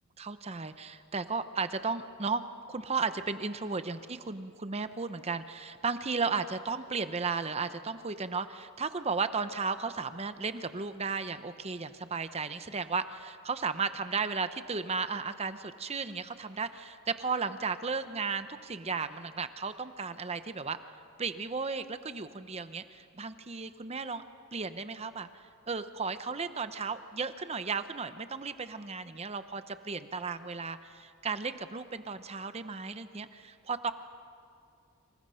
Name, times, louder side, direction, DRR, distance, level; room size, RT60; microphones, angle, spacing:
voice 1, 0.2-20.8 21.2-24.2 24.5-25.3 25.7-33.9, right 4 dB, 30° right, 10 dB, 0.8 m, -34 dB
30.0 x 27.0 x 5.7 m, 2.4 s
head